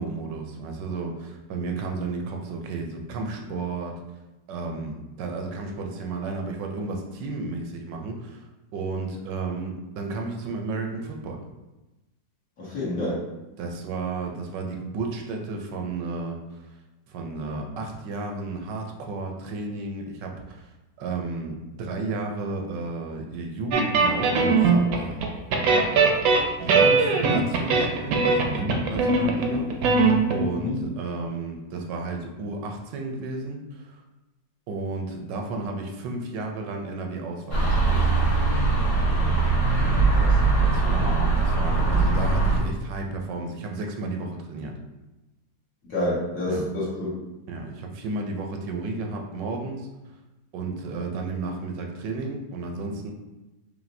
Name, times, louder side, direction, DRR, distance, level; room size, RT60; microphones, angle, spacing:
voice 1, 0.0-4.0 4.5-11.4 13.6-16.6 17.1-20.7 21.0-25.4 25.8-26.0 26.6-30.0 30.3-34.0 34.7-38.0 40.6-44.8 46.5-46.7 47.5-49.9 50.5-53.1, right 3 dB, 85° right, 2 dB, 1.3 m, -33 dB
voice 2, 12.6-13.2 30.6-30.7 39.9-40.3 45.9-47.1, left 1 dB, 55° left, -7 dB, 1.7 m, -28 dB
sound 1, 23.7-25.3 25.5-30.4, right 4 dB, 65° right, 1.0 m, -20 dB
sound 2, 37.5-42.6, right 3 dB, 25° left, 0.9 m, -21 dB
5.0 x 2.8 x 2.6 m, 1.0 s
omnidirectional pair, 1.9 m